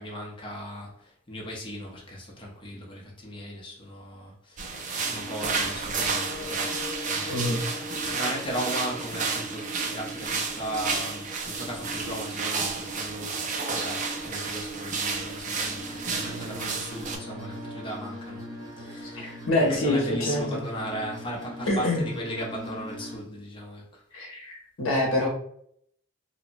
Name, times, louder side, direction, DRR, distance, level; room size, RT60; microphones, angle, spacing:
voice 1, 0.0-18.5 18.8-24.0, equal, 25° left, 0.6 m, -37 dB
sound 1, 4.6-17.2, right 4 dB, 35° right, 0.3 m, -31 dB
sound 2, 5.0-23.2, equal, 15° right, 0.8 m, -41 dB
voice 2, 7.3-7.6 19.2-20.5 21.7-22.0 24.1-25.3, left 1 dB, 65° left, 0.8 m, -25 dB
2.8 x 2.1 x 2.5 m
head